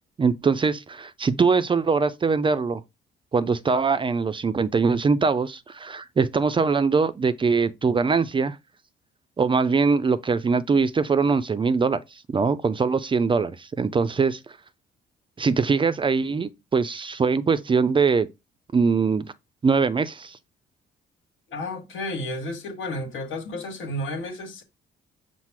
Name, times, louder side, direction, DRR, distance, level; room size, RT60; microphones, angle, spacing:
voice 1, 0.2-2.8 3.3-8.6 9.4-12.0 12.3-14.4 15.4-18.3 18.7-19.3 19.6-20.4, right 5 dB, 25° right, 0.4 m, -22 dB
voice 2, 21.5-24.6, left 1 dB, 80° left, 1.3 m, -32 dB
5.7 x 2.0 x 4.6 m
cardioid pair, 90°, 20 cm